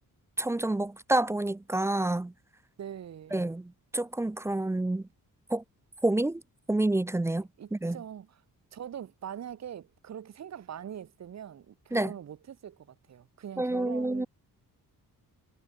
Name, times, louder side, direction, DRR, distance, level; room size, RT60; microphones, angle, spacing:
voice 1, 0.4-2.3 3.3-5.0 5.5-5.6 6.0-6.4 6.7-8.0 11.9-12.1 13.6-14.3, right 2 dB, 10° right, 0.3 m, -28 dB
voice 2, 2.8-3.4 7.6-8.4 8.7-14.3, right 9 dB, 50° right, 1.0 m, -42 dB
wide cardioid pair, 130°, 35 cm